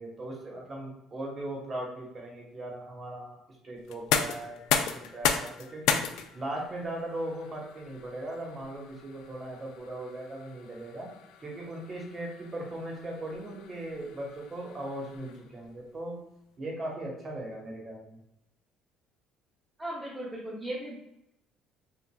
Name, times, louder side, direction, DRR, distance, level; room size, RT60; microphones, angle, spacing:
voice 1, 0.0-3.4 3.6-6.0 6.3-11.1 11.4-16.2 16.6-18.2, right 1 dB, 25° right, -1 dB, 1.0 m, -38 dB
sound 1, 3.8-15.6, left 7 dB, 85° left, 0.3 m, -35 dB
voice 2, 19.8-21.0, right 1 dB, 5° right, -6 dB, 0.6 m, -36 dB
5.8 x 2.3 x 2.3 m, 0.82 s
cardioid pair, 160°, 0 cm